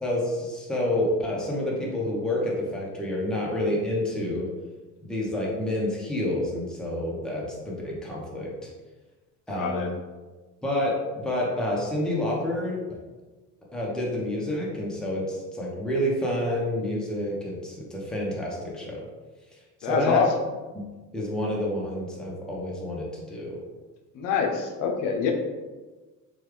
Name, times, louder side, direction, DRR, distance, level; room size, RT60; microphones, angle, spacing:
voice 1, 0.0-4.5 5.0-8.7 9.5-9.9 10.6-12.8 13.7-19.0 19.8-20.2 21.1-23.6, left 1 dB, ahead, -4 dB, 0.7 m, -28 dB
voice 2, 9.5-9.9 19.8-20.3 24.1-25.3, left 5 dB, 70° left, 3 dB, 0.5 m, -25 dB
3.2 x 2.3 x 3.2 m, 1.3 s
cardioid pair, 130°, 33 cm